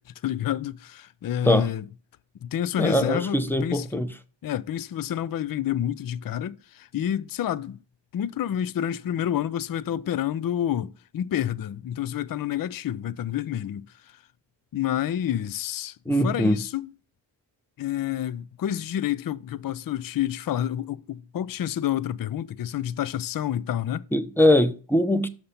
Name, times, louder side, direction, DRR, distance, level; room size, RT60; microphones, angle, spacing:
voice 1, 0.2-1.9 2.4-4.1 4.4-7.8 8.1-14.2 14.7-16.9 17.8-24.0, left 10 dB, 50° left, 0.5 m, -29 dB
voice 2, 2.8-4.1 16.1-16.6 24.1-25.3, left 1 dB, 5° left, 0.7 m, -22 dB
6.5 x 5.7 x 5.7 m
wide cardioid pair, 75°, 45 cm